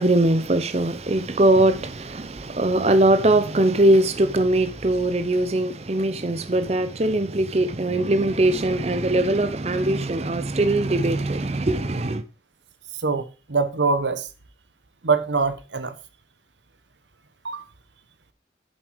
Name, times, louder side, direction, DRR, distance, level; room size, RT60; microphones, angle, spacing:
voice 1, 0.0-12.2, right 1 dB, 35° right, 0.6 m, -21 dB
voice 2, 13.0-14.3 15.0-15.9 17.4-17.6, right 4 dB, 90° right, 1.2 m, -23 dB
8.0 x 7.6 x 4.7 m
head